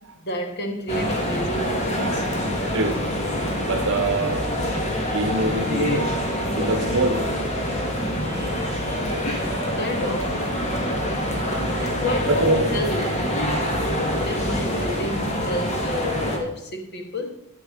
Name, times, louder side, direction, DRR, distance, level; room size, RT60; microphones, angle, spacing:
voice 1, 0.2-2.3 9.1-9.5 9.8-10.4 11.8-13.4 14.2-17.3, left 1 dB, 50° left, 1.4 m, -30 dB
sound 1, 0.9-16.4, equal, 30° left, 1.5 m, -25 dB
voice 2, 3.6-4.5 5.0-6.1 6.5-7.9 12.3-12.7, right 2 dB, 60° right, 1.1 m, -25 dB
12.0 x 8.8 x 3.7 m
head